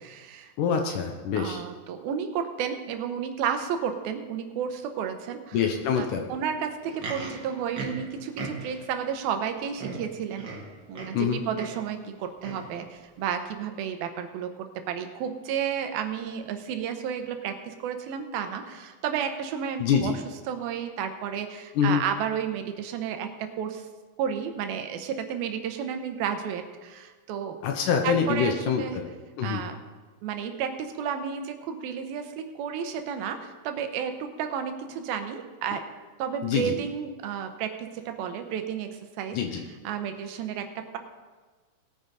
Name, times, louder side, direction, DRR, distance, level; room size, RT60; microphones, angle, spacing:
voice 1, 0.0-0.5 1.3-5.6 6.0-10.5 10.9-14.5 14.9-23.9 24.2-27.6 28.0-29.0 29.4-29.8 30.2-35.8 36.2-41.0, right 8 dB, 85° right, 6 dB, 2.7 m, -32 dB
voice 2, 0.6-1.6 5.5-6.2 11.1-11.4 19.8-20.2 21.8-22.0 27.6-29.1 29.4-29.6 36.4-36.7 39.3-39.6, left 7 dB, 70° left, 3 dB, 2.1 m, -25 dB
Livestock farm animals working animals, 6.7-8.9 9.5-9.6 9.8-11.3 11.5-11.9 12.4-12.7 13.4-13.5, right 3 dB, 50° right, 1.5 m, -38 dB
19.0 x 9.0 x 4.0 m, 1.4 s
omnidirectional pair, 4.3 m